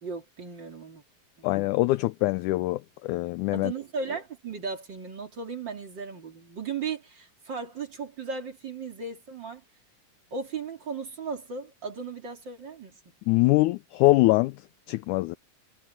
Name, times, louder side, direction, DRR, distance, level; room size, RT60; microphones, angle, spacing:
voice 1, 0.0-1.0 1.4-1.5 3.5-9.6 10.3-12.9, right 5 dB, 35° right, 2.9 m, -36 dB
voice 2, 1.4-3.7 13.3-14.6 14.9-15.4, left 19 dB, 85° left, 1.7 m, -23 dB
omnidirectional pair, 4.0 m